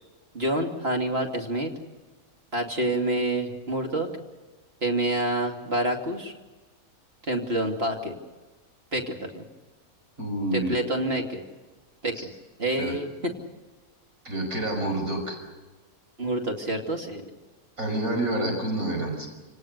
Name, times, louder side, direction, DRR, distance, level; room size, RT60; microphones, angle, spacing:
voice 1, 0.3-1.7 2.5-4.1 4.8-6.3 7.3-8.1 8.9-9.4 10.5-11.4 12.0-12.2 12.6-13.1 16.2-17.2, right 1 dB, 40° right, 2 dB, 3.0 m, -27 dB
voice 2, 10.2-10.7 12.1-12.2 12.8-13.0 14.2-15.4 17.8-19.3, right 1 dB, 75° right, 1 dB, 6.2 m, -28 dB
28.5 x 18.5 x 6.8 m, 1.3 s
omnidirectional pair, 1.5 m